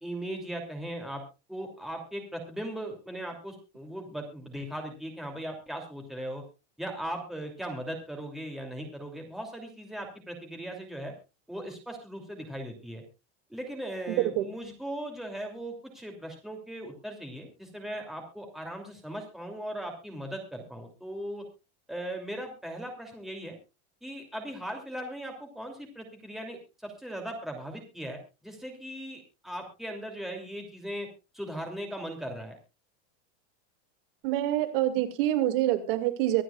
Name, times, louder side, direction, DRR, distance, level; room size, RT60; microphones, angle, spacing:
voice 1, 0.0-1.2 1.5-6.4 6.8-11.1 11.5-13.0 13.5-21.4 21.9-23.6 24.0-32.6, right 1 dB, ahead, 2 dB, 2.9 m, -38 dB
voice 2, 14.1-14.5 34.2-36.4, right 14 dB, 55° right, 8 dB, 2.3 m, -26 dB
24.5 x 10.0 x 2.4 m, 0.28 s
supercardioid pair, 175°, 34 cm